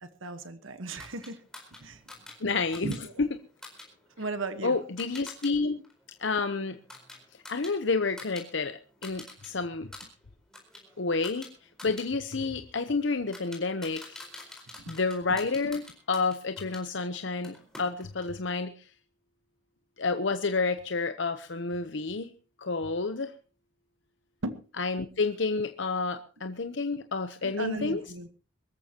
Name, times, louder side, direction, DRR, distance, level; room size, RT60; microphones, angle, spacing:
voice 1, 0.0-1.4 1.8-2.0 2.8-3.2 4.2-4.7 14.7-15.0 15.3-15.4 24.4-24.6 27.4-28.3, right 2 dB, 85° right, 11 dB, 1.3 m, -36 dB
sound 1, 1.0-5.5 5.8-8.5 8.7-9.5 9.8-16.8 17.4-18.3, left 2 dB, 5° left, 4.4 m, -48 dB
voice 2, 2.4-3.3 4.6-5.8 6.2-6.8 7.5-9.9 11.0-11.5 11.8-14.2 14.9-18.7 20.0-22.3 22.6-23.3 24.8-28.0, left 4 dB, 65° left, 8 dB, 0.8 m, -30 dB
23.5 x 14.0 x 2.9 m, 0.37 s
head